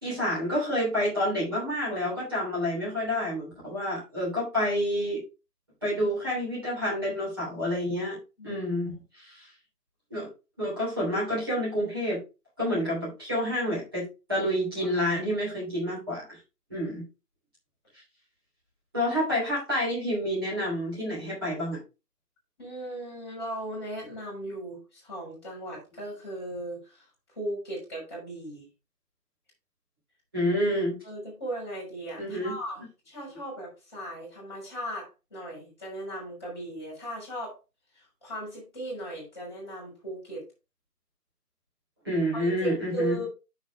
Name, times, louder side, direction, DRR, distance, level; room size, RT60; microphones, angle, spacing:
voice 1, 0.0-5.2 5.8-8.2 8.4-9.4 10.1-10.3 10.6-12.2 12.6-16.4 16.7-17.0 18.9-21.8 30.3-31.0 32.2-32.6 42.0-43.2, equal, 15° right, -7 dB, 3.0 m, -28 dB
voice 2, 8.4-8.7 14.8-15.0 22.6-27.1 27.4-28.7 31.0-37.6 37.9-40.4 42.3-43.3, right 1 dB, 15° left, -4 dB, 3.5 m, -37 dB
7.3 x 6.3 x 3.4 m, 0.29 s
figure-of-eight pair, 180°, 48 cm